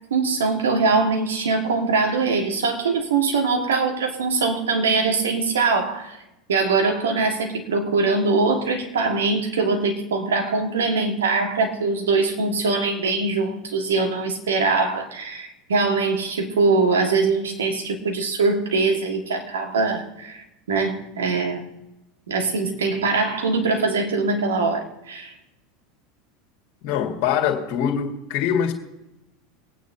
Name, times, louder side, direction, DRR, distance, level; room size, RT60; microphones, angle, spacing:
voice 1, 0.1-6.2 6.5-21.7 22.3-25.3, right 4 dB, 70° right, 1.9 m, -22 dB
voice 2, 26.8-28.7, left 8 dB, 50° left, 1.9 m, -23 dB
23.5 x 9.3 x 2.8 m
figure-of-eight pair, 80°, 0 cm